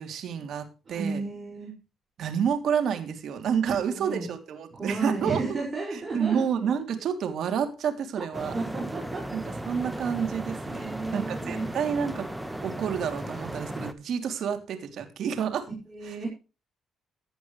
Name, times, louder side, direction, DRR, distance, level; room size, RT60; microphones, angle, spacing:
voice 1, 0.0-1.2 2.2-5.6 5.9-8.5 9.3-12.3 12.6-15.7 16.0-16.2, right 7 dB, 70° right, 8 dB, 3.0 m, -29 dB
voice 2, 0.9-1.7 3.9-4.3 4.7-6.5 8.5-9.2 10.7-11.7 15.9-16.3, right 3 dB, 35° right, -1 dB, 6.2 m, -32 dB
sound 1, 8.3-13.9, right 1 dB, 10° right, 1.4 m, -36 dB
16.5 x 10.5 x 3.3 m, 0.32 s
cardioid pair, 90°, 0 cm